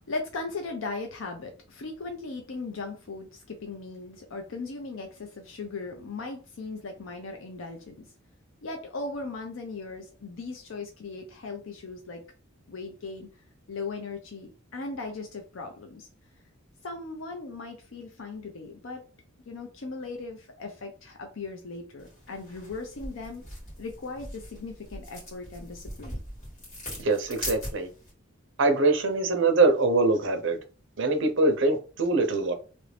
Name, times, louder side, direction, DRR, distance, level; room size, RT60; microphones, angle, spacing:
voice 1, 0.1-8.1 8.6-12.2 12.7-13.3 13.7-16.1 16.8-19.0 19.5-23.4 23.8-26.2, left 3 dB, 75° left, 0.6 m, -38 dB
sound 1, 22.0-28.1, left 1 dB, 35° left, 1.9 m, -41 dB
voice 2, 27.0-27.9 28.6-30.6 31.0-32.5, right 3 dB, 65° right, 0.7 m, -23 dB
2.9 x 2.6 x 3.3 m
head